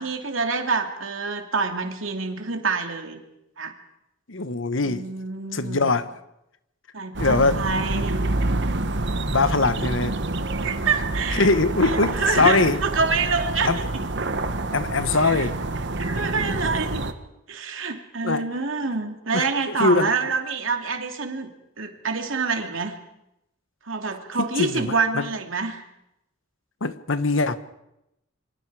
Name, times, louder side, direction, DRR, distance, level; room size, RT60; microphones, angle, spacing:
voice 1, 0.0-3.2 3.6-3.7 4.8-5.9 6.9-8.2 10.6-11.5 11.8-14.3 15.2-15.5 16.0-17.1 17.5-21.5 21.8-23.0 23.9-25.8, right 4 dB, 80° right, 2.7 m, -27 dB
voice 2, 4.3-5.1 5.5-6.1 7.2-7.6 9.3-10.2 11.3-12.8 13.6-13.8 14.7-15.6 18.2-18.5 19.3-20.1 24.4-25.3 26.8-27.6, left 3 dB, 75° left, 1.2 m, -22 dB
sound 1, 7.1-17.1, right 2 dB, 65° right, 1.3 m, -27 dB
27.0 x 24.5 x 4.9 m
head